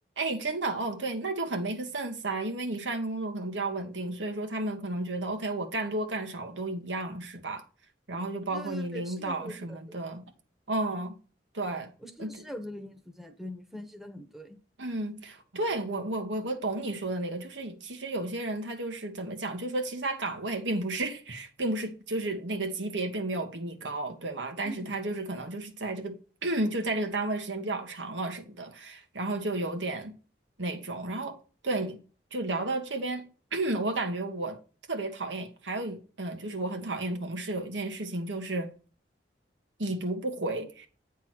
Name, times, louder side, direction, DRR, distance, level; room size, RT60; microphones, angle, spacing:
voice 1, 0.2-7.6 8.1-10.2 10.7-11.1 11.5-11.9 12.2-12.3 14.8-26.1 26.4-30.1 30.6-31.4 31.6-32.0 32.3-33.2 33.5-34.6 34.9-38.7 39.8-40.9, right 2 dB, 85° right, 1.6 m, -32 dB
voice 2, 8.5-10.0 12.0-14.6 24.6-24.9, equal, ahead, 0.9 m, -42 dB
8.9 x 3.7 x 6.1 m
head